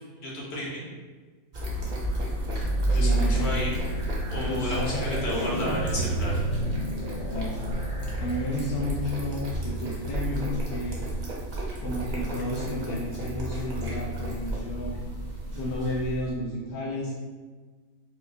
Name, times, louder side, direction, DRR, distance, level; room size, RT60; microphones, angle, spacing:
voice 1, 0.2-0.9 2.9-3.7 4.3-6.3, left 1 dB, 55° left, -4 dB, 0.9 m, -33 dB
sound 1, 1.5-16.3, right 1 dB, 45° right, 0.7 m, -31 dB
sound 2, 2.0-9.3, right 2 dB, 70° right, 1.1 m, -33 dB
voice 2, 2.9-3.7 4.4-5.8 7.3-7.6 8.2-11.0 11.8-15.0 15.5-17.1, left 1 dB, 90° left, -5 dB, 1.2 m, -32 dB
4.5 x 2.3 x 2.6 m, 1.4 s
omnidirectional pair, 1.6 m